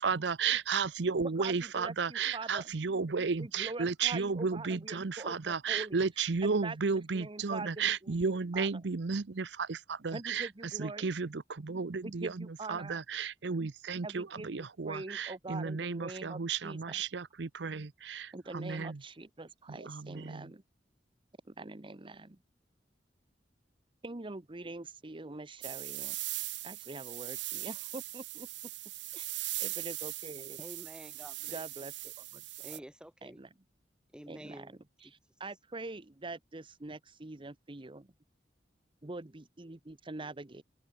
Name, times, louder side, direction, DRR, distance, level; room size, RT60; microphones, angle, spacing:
voice 1, 0.0-10.5 10.8-19.0 19.8-20.5, right 5 dB, 70° right, 0.7 m, -33 dB
voice 2, 1.4-2.7 3.4-6.0 6.4-7.7 8.0-8.7 10.1-11.1 12.0-13.0 14.0-17.0 18.3-20.6 21.5-22.4 24.0-26.2 26.6-28.5 29.1-29.3 29.6-30.6 31.5-32.4 32.7-32.8 33.2-33.5 34.3-38.1 39.0-40.6, right 3 dB, 30° right, 1.0 m, -44 dB
sound 1, 25.6-32.8, right 17 dB, 90° right, 1.2 m, -40 dB
voice 3, 30.6-31.6 32.6-33.4 34.1-34.7 35.0-35.1, equal, 5° right, 1.2 m, -49 dB
open air
head